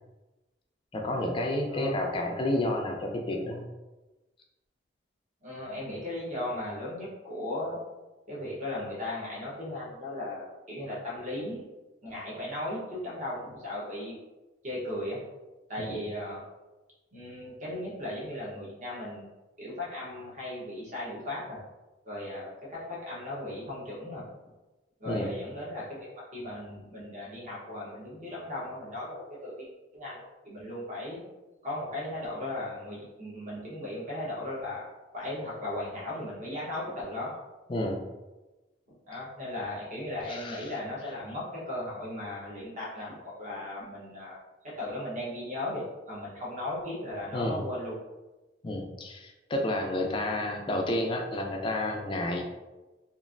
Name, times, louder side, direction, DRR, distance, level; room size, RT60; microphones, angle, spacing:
voice 1, 0.9-3.7 15.8-16.0 25.1-25.3 37.7-38.0 40.3-40.7 47.3-47.6 48.6-52.5, left 1 dB, 25° left, 1 dB, 0.3 m, -30 dB
voice 2, 5.4-7.8 8.3-11.7 12.0-14.1 14.6-15.2 15.7-16.4 17.1-19.3 19.6-21.6 22.0-24.2 25.0-26.1 26.3-29.7 29.9-31.2 31.6-34.9 35.1-37.3 39.1-44.4 44.6-47.9, left 1 dB, 40° right, -6 dB, 0.9 m, -36 dB
3.0 x 2.5 x 2.4 m, 1.1 s
head